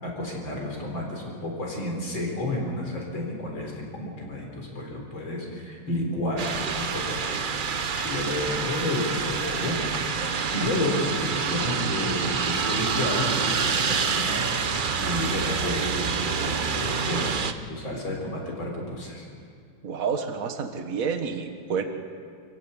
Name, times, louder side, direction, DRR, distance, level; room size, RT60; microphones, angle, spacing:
voice 1, 0.0-7.3 7.7-9.8 10.1-14.4 15.0-17.4 17.7-19.3, left 1 dB, 75° left, -1 dB, 4.8 m, -31 dB
sound 1, 6.4-17.5, right 5 dB, 65° right, 0.5 m, -27 dB
voice 2, 19.8-21.8, right 6 dB, 45° right, 6 dB, 1.8 m, -29 dB
25.5 x 16.5 x 8.4 m, 2.3 s
omnidirectional pair, 2.2 m